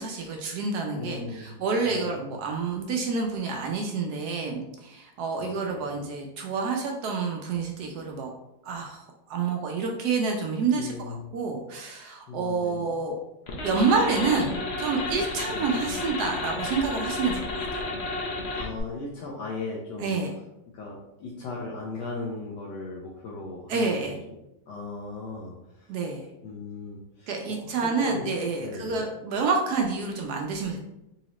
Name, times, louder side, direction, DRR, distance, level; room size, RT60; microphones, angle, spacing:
voice 1, 0.0-8.3 8.6-13.2 13.6-17.6 20.0-20.3 23.7-24.2 25.9-26.3 27.3-30.8, right 4 dB, 75° right, 2 dB, 1.0 m, -28 dB
voice 2, 0.9-1.6 1.9-2.2 5.4-5.8 10.8-11.4 12.3-12.9 15.5-15.8 18.5-20.2 20.7-24.3 24.7-25.9 26.4-28.3 28.6-29.1, left 3 dB, 75° left, -3 dB, 1.2 m, -37 dB
sound 1, 13.5-18.8, left 2 dB, 90° left, 0.5 m, -32 dB
4.0 x 2.8 x 3.0 m, 0.89 s
omnidirectional pair, 2.0 m